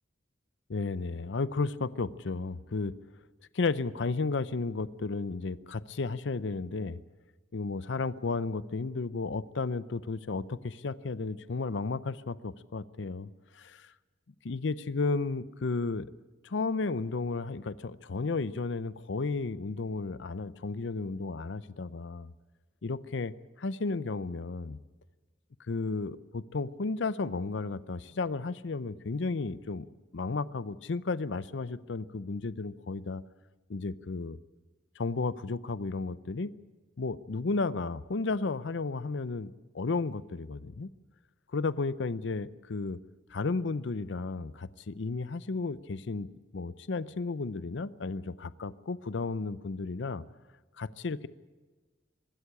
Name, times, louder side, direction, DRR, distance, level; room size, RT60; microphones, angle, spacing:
voice 1, 0.7-2.9 3.5-7.0 7.5-13.9 14.4-16.1 16.4-22.3 22.8-24.8 25.7-29.9 30.1-33.2 33.7-34.4 35.0-36.5 37.0-40.9 41.5-43.0 43.3-46.3 46.5-50.2 50.8-51.3, left 3 dB, 70° left, 17 dB, 0.6 m, -33 dB
23.5 x 13.0 x 10.0 m, 1.3 s
head